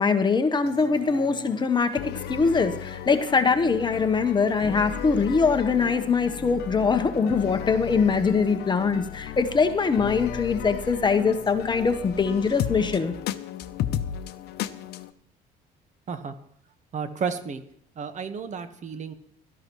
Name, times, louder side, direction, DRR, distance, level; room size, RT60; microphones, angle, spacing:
voice 1, 0.0-2.0 2.3-13.1, left 5 dB, 25° left, 8 dB, 1.1 m, -23 dB
sound 1, 0.6-15.1, left 11 dB, 75° left, 0.7 m, -35 dB
voice 2, 16.9-17.6 18.0-19.1, right 6 dB, 45° right, 9 dB, 1.3 m, -32 dB
17.0 x 13.0 x 3.1 m, 0.71 s
cardioid pair, 110°, 17 cm